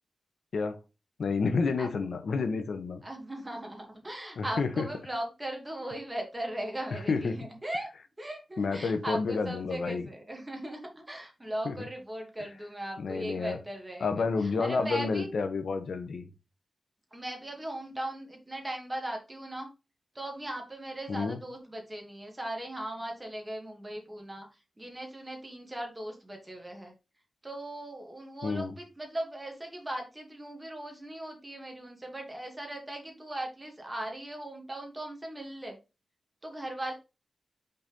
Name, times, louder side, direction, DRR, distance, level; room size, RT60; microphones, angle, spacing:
voice 1, 1.2-3.0 4.4-4.8 7.1-7.4 8.6-10.0 11.6-11.7 13.0-13.6 14.0-16.3 21.1-21.4 28.4-28.7, left 4 dB, 80° left, 1.0 m, -29 dB
voice 2, 3.0-7.9 8.2-15.3 17.1-19.7 20.1-26.9 27.4-35.8 36.4-36.9, right 1 dB, 20° right, 2.4 m, -38 dB
5.7 x 4.3 x 5.2 m
wide cardioid pair, 95°, 0 cm